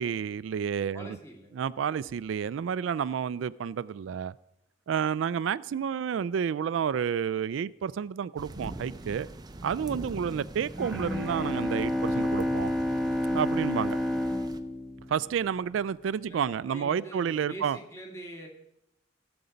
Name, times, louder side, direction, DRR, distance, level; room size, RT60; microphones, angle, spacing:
voice 1, 0.0-1.2 1.5-4.3 4.9-9.3 9.6-12.7 13.3-14.0 15.1-17.8, right 7 dB, 85° right, 0.3 m, -30 dB
voice 2, 0.9-1.5 16.2-18.5, right 1 dB, 15° left, 2.1 m, -44 dB
sound 1, 8.4-14.6, right 1 dB, 20° right, 0.5 m, -43 dB
Bowed string instrument, 10.8-15.7, left 1 dB, ahead, 1.0 m, -30 dB
16.0 x 6.9 x 5.1 m
head